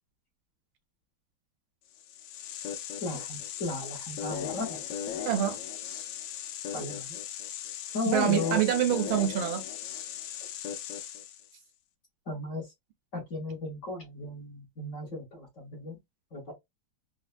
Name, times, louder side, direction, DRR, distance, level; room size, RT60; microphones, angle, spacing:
sound 1, 1.9-11.5, left 9 dB, 75° left, 1.3 m, -38 dB
voice 1, 3.0-4.8 6.7-7.2 7.9-8.6 12.3-12.7 13.1-16.0 16.3-16.5, left 2 dB, 45° left, 1.1 m, -35 dB
voice 2, 5.3-5.6 8.1-9.6, right 11 dB, 75° right, 1.4 m, -26 dB
4.3 x 2.2 x 2.4 m
omnidirectional pair, 2.4 m